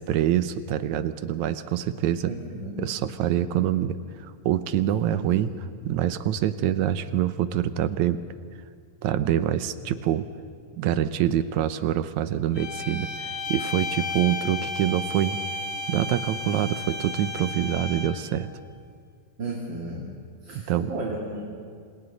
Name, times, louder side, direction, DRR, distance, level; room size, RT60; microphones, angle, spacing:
voice 1, 0.0-2.3 2.8-5.5 5.8-8.2 9.0-10.3 10.8-15.4 15.9-18.5 20.5-20.9, right 11 dB, 80° right, 12 dB, 2.2 m, -25 dB
voice 2, 2.2-2.8 5.1-5.4 19.4-20.1 20.4-21.4, right 2 dB, 40° right, -2 dB, 2.9 m, -34 dB
sound 1, 12.5-18.3, left 3 dB, 55° left, 3.5 m, -33 dB
27.5 x 27.5 x 4.1 m, 2.2 s
omnidirectional pair, 3.3 m